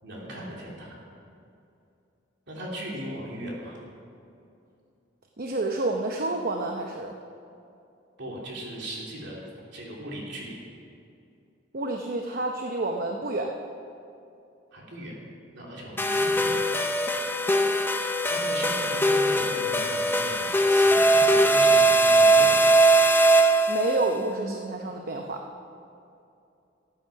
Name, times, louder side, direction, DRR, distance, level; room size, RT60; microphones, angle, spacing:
voice 1, 0.0-1.0 2.5-3.8 8.2-9.4 9.7-10.6 14.7-15.1 15.5-16.7 17.1-22.9, right 1 dB, 65° right, -3 dB, 3.1 m, -38 dB
voice 2, 5.4-7.1 11.7-13.5 23.7-25.4, right 2 dB, 50° right, 2 dB, 0.8 m, -29 dB
sound 1, 16.0-24.1, right 2 dB, 10° left, 0.6 m, -20 dB
14.5 x 8.9 x 5.8 m, 2.6 s
head